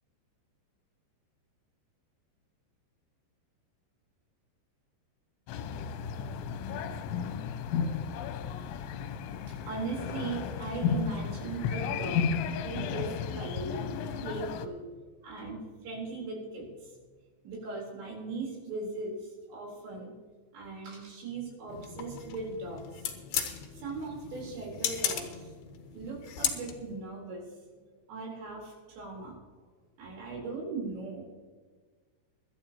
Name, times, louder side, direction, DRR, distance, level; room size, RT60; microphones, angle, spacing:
sound 1, 5.5-14.7, left 7 dB, 85° left, 3.2 m, -33 dB
voice 1, 9.5-12.4 12.6-14.8 15.2-16.9 17.4-19.1 19.5-20.1 20.5-23.1 23.7-25.5 25.9-27.4 27.7-27.8 28.1-29.4 30.0-31.2, right 3 dB, 70° right, -2 dB, 6.1 m, -39 dB
sound 2, 21.7-27.0, left 9 dB, 65° left, 3.1 m, -36 dB
22.5 x 11.5 x 3.0 m, 1.4 s
omnidirectional pair, 5.3 m